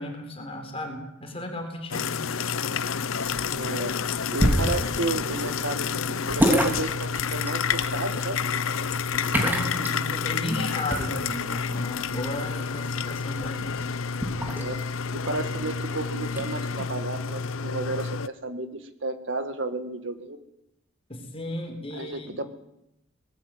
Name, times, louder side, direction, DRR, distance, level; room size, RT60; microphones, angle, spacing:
voice 1, 0.0-2.1 9.2-13.8 15.2-15.3 21.1-22.4, left 1 dB, 30° left, 3 dB, 4.3 m, -34 dB
sound 1, 1.9-18.3, left 6 dB, 85° left, 0.7 m, -29 dB
sound 2, 2.8-16.9, equal, 10° right, 3.2 m, -31 dB
voice 2, 3.5-4.0 4.3-8.4 14.6-14.8 15.1-20.4 21.9-22.4, right 2 dB, 65° right, 8 dB, 1.9 m, -32 dB
20.0 x 18.5 x 8.0 m, 0.87 s
head